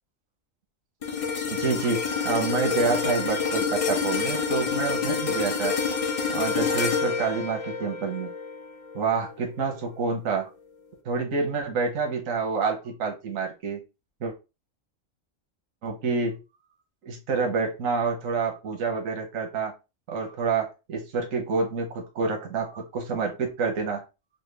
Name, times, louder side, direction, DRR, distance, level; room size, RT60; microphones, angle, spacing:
sound 1, 1.0-9.4 9.8-10.0, left 5 dB, 50° left, 0.4 m, -28 dB
voice 1, 1.5-5.8 6.3-8.3 8.9-10.5 11.0-13.8 14.2-14.3 15.8-16.4 17.0-19.7 20.1-24.0, right 4 dB, 80° right, 1.3 m, -28 dB
4.1 x 2.2 x 3.2 m
omnidirectional pair, 1.4 m